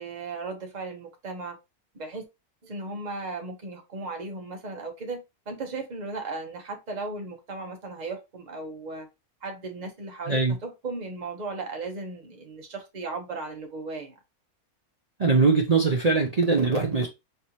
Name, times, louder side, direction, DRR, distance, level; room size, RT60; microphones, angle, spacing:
voice 1, 0.0-1.6 1.9-2.2 2.6-9.1 9.4-14.1, right 3 dB, 35° right, 0.9 m, -36 dB
voice 2, 15.2-17.1, right 4 dB, 70° right, 0.3 m, -21 dB
4.3 x 3.4 x 2.8 m
omnidirectional pair, 1.6 m